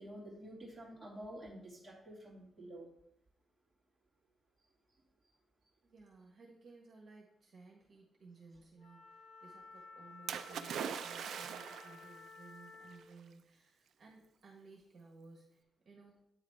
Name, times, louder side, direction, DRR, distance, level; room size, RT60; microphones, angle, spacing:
voice 1, 0.0-2.9, right 1 dB, 15° right, -5 dB, 2.6 m, -49 dB
voice 2, 5.8-16.2, right 4 dB, 55° right, -1 dB, 1.5 m, -58 dB
Wind instrument woodwind instrument, 8.8-13.1, left 4 dB, 40° left, 1.2 m, -55 dB
Splash splatter, 10.3-12.1 13.0-13.1, right 7 dB, 85° right, 0.4 m, -41 dB
9.0 x 3.9 x 4.9 m, 0.74 s
wide cardioid pair, 150°, 0 cm